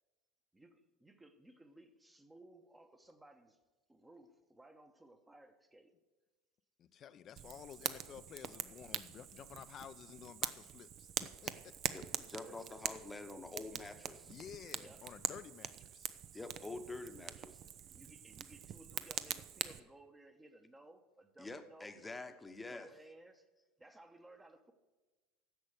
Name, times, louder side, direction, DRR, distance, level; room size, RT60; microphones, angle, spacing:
voice 1, 0.5-3.6 3.9-5.9 12.3-12.7 14.8-15.1 17.8-23.5 23.8-24.7, right 1 dB, 10° right, 1.1 m, -60 dB
voice 2, 6.8-11.7 14.2-16.2, left 9 dB, 35° left, 0.6 m, -52 dB
Fire, 7.4-19.8, right 9 dB, 40° right, 0.6 m, -44 dB
voice 3, 11.9-14.3 16.3-17.6 21.4-22.9, left 2 dB, 10° left, 1.1 m, -47 dB
10.5 x 7.5 x 6.7 m
figure-of-eight pair, 70°, 0 cm